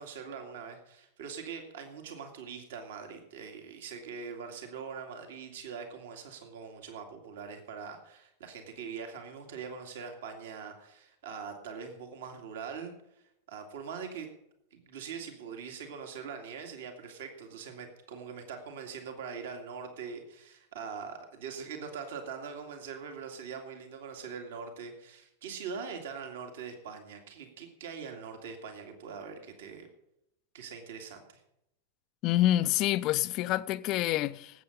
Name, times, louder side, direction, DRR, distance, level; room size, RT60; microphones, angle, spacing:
voice 1, 0.0-12.9 13.5-14.3 14.7-29.9 30.5-31.4, right 6 dB, 60° right, 2.2 m, -42 dB
voice 2, 32.2-34.6, left 14 dB, 40° left, 0.5 m, -27 dB
18.5 x 8.5 x 5.3 m
figure-of-eight pair, 90°, 0 cm